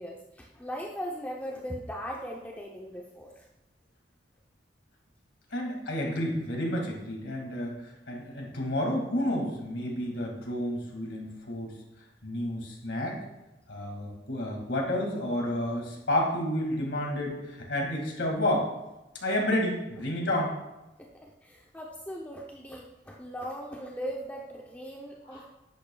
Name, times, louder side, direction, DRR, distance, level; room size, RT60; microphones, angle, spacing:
voice 1, 0.0-3.5 21.0-25.4, equal, 10° left, -2 dB, 0.6 m, -39 dB
voice 2, 5.5-11.7 12.2-13.2 13.7-18.7 19.2-20.5 25.3-25.4, left 1 dB, 75° left, 0 dB, 2.0 m, -30 dB
10.0 x 8.4 x 2.3 m, 0.98 s
head